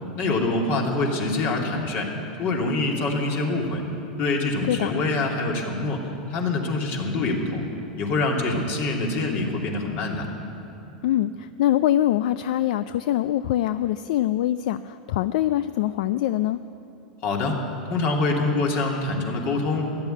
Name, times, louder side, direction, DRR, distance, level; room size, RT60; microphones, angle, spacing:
voice 1, 0.2-2.1 2.4-3.8 4.2-6.0 6.3-7.6 8.0-10.3 17.2-17.6 17.9-19.9, left 2 dB, 50° left, 0 dB, 2.8 m, -25 dB
voice 2, 11.0-16.6, left 12 dB, 70° left, 13 dB, 0.4 m, -23 dB
13.5 x 11.0 x 9.1 m, 2.9 s
hypercardioid pair, 100°, 4 cm